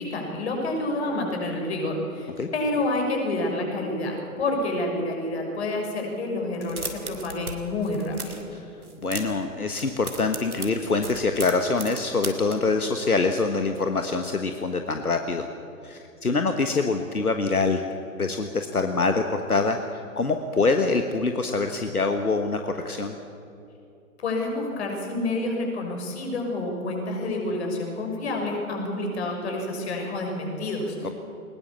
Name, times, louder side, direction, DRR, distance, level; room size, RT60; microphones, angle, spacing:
voice 1, 0.0-8.4 24.2-31.1, left 2 dB, 45° left, 1 dB, 6.1 m, -28 dB
sound 1, 6.5-7.6 7.8-8.5 8.8-9.4 9.7-12.6, right 3 dB, 80° right, 3.0 m, -36 dB
voice 2, 9.0-15.5 15.8-17.8 18.2-23.2 31.0-31.1, left 3 dB, 80° left, 6 dB, 1.5 m, -25 dB
21.5 x 20.0 x 7.2 m, 2.7 s
figure-of-eight pair, 130°, 44 cm